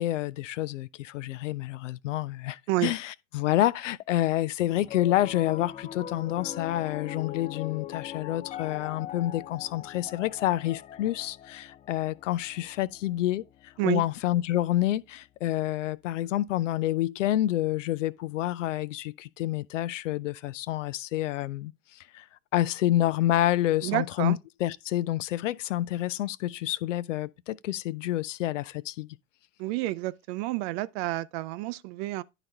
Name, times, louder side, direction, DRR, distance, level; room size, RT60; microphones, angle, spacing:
voice 1, 0.0-22.3 22.5-29.2, left 14 dB, 75° left, 0.5 m, -28 dB
Piano, 4.8-15.2, left 10 dB, 20° left, 0.4 m, -42 dB
voice 2, 23.8-24.4 29.6-32.2, right 18 dB, 55° right, 0.5 m, -29 dB
11.0 x 4.1 x 3.3 m
figure-of-eight pair, 75°, 38 cm